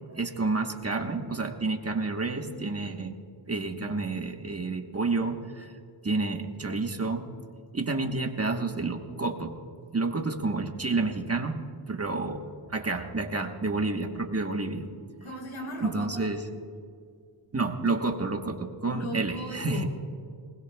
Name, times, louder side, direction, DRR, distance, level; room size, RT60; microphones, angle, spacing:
voice 1, 0.1-3.2 3.5-5.7 6.0-7.3 7.7-9.5 9.9-11.6 11.9-14.9 15.8-16.5 17.5-19.8, right 3 dB, 30° right, 3 dB, 1.2 m, -29 dB
voice 2, 15.2-16.3 18.9-19.9, equal, 85° left, 0 dB, 4.7 m, -36 dB
25.5 x 19.5 x 2.3 m, 2.2 s
wide cardioid pair, 130°, 48 cm